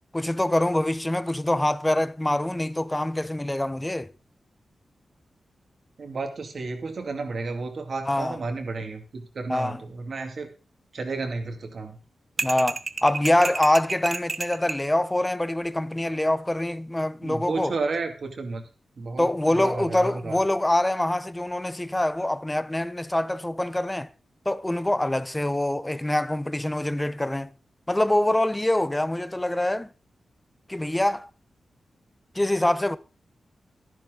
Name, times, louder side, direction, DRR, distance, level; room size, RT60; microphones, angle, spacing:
voice 1, 0.1-4.1 8.1-8.4 9.5-9.8 12.4-17.7 19.2-24.1 24.5-27.5 27.9-29.9 30.7-31.3 32.3-33.0, left 1 dB, 15° left, 0.7 m, -25 dB
voice 2, 6.0-10.5 10.9-12.0 17.2-18.6 19.0-20.4, right 3 dB, 60° right, 2.5 m, -32 dB
sound 1, 12.4-14.8, right 4 dB, 45° right, 0.7 m, -31 dB
12.5 x 11.0 x 3.9 m
wide cardioid pair, 90°, 0 cm